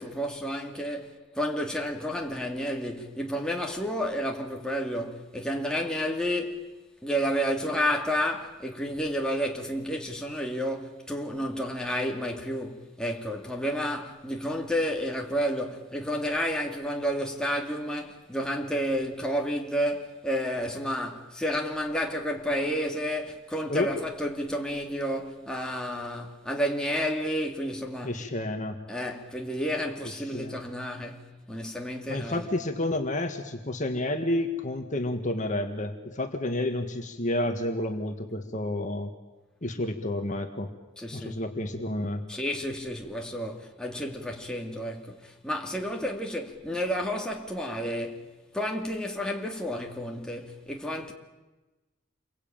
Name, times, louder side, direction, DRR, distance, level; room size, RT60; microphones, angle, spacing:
voice 1, 0.0-6.6 7.0-28.2 28.9-32.4 41.0-41.4 42.3-48.3 48.5-51.1, equal, 5° left, 2.6 m, -31 dB
voice 2, 28.0-28.7 30.3-30.6 32.1-39.1 39.6-40.7 41.1-42.2, left 1 dB, 40° left, 1.8 m, -30 dB
28.5 x 23.0 x 9.0 m
head